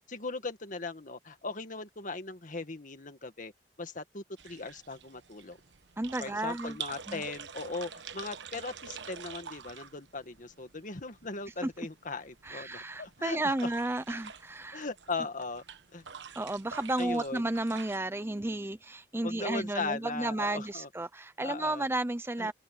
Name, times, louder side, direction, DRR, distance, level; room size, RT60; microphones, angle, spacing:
voice 1, 0.1-3.5 3.8-5.6 6.2-13.7 14.7-15.6 15.9-16.0 17.0-17.4 19.2-20.9 21.4-21.9 22.4-22.5, left 3 dB, 50° left, 1.9 m, -38 dB
sound 1, 4.4-18.0, right 7 dB, 85° right, 1.1 m, -47 dB
voice 2, 6.0-6.8 7.1-7.2 12.4-14.8 16.4-22.5, right 2 dB, 15° right, 0.7 m, -33 dB
open air
head